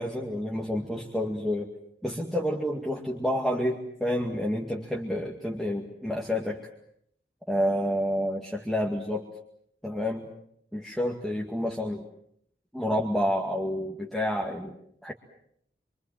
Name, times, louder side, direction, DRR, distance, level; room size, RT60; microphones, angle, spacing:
voice 1, 0.0-1.7 2.0-6.6 7.5-9.3 9.8-10.3 10.7-12.1 12.7-14.7 15.0-15.1, equal, ahead, -2 dB, 2.2 m, -29 dB
27.0 x 25.0 x 7.6 m, 0.72 s
head